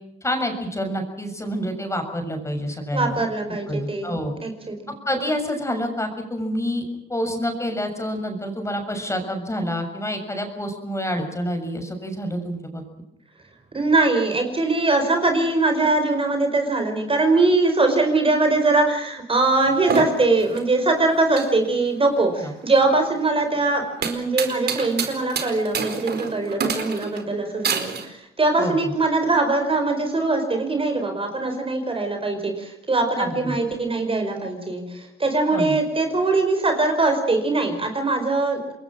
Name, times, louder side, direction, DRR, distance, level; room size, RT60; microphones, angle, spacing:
voice 1, 0.2-3.2 3.7-4.3 4.9-6.8 7.1-12.8 22.4-22.5 28.6-28.7 33.2-33.6 35.5-35.8, equal, 15° left, 5 dB, 6.8 m, -27 dB
voice 2, 2.9-4.1 4.4-4.8 13.7-38.7, right 2 dB, 25° right, 5 dB, 5.0 m, -22 dB
sound 1, 19.6-28.1, right 6 dB, 55° right, 4.5 m, -29 dB
27.5 x 21.5 x 6.3 m, 0.83 s
cardioid pair, 90°, 20 cm